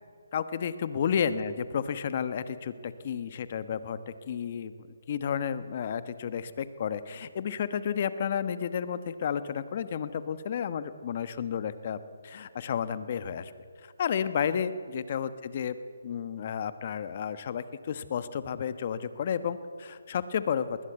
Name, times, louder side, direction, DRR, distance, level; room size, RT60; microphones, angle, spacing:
voice 1, 0.3-4.7 5.1-12.0 12.2-13.5 13.8-15.8 16.0-20.9, left 7 dB, 40° left, 13 dB, 1.2 m, -32 dB
20.0 x 19.5 x 8.2 m, 2.2 s
hypercardioid pair, 155°, 0 cm